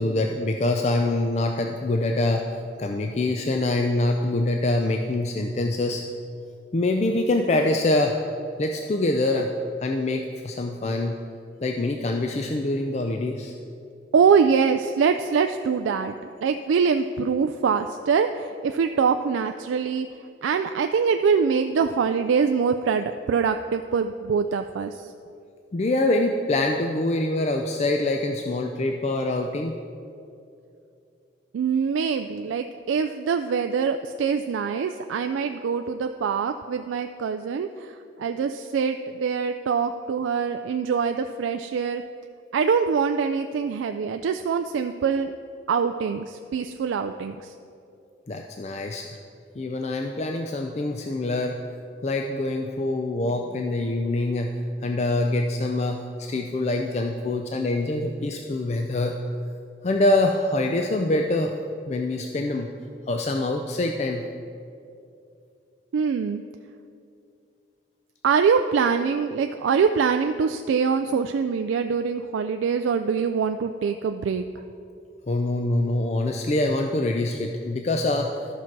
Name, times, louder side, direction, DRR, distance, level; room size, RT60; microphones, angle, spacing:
voice 1, 0.0-2.5 2.8-6.0 6.7-8.2 8.6-9.5 9.8-11.2 11.6-13.5 25.7-29.8 48.3-49.1 49.6-51.6 52.0-54.6 54.8-59.2 59.8-61.5 61.9-62.7 63.1-64.3 75.3-78.4, left 2 dB, 35° left, 3 dB, 0.4 m, -25 dB
voice 2, 14.1-20.1 20.4-25.1 31.5-42.0 42.5-45.3 45.7-47.5 65.9-66.4 68.2-74.4, right 6 dB, 90° right, 7 dB, 0.3 m, -24 dB
13.5 x 5.9 x 4.6 m, 2.6 s
head